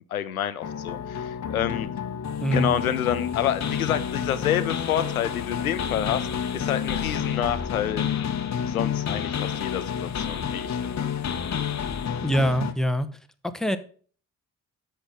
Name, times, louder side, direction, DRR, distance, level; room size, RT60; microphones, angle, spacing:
voice 1, 0.1-1.9 2.5-6.3 6.5-8.3 8.7-11.1, left 10 dB, 85° left, 12 dB, 0.6 m, -28 dB
sound 1, 0.6-12.7, left 8 dB, 40° left, 1.2 m, -29 dB
voice 2, 2.4-2.7 12.2-13.1 13.4-13.8, right 1 dB, ahead, 9 dB, 1.2 m, -24 dB
10.5 x 7.0 x 3.9 m, 0.42 s
figure-of-eight pair, 40°, 42 cm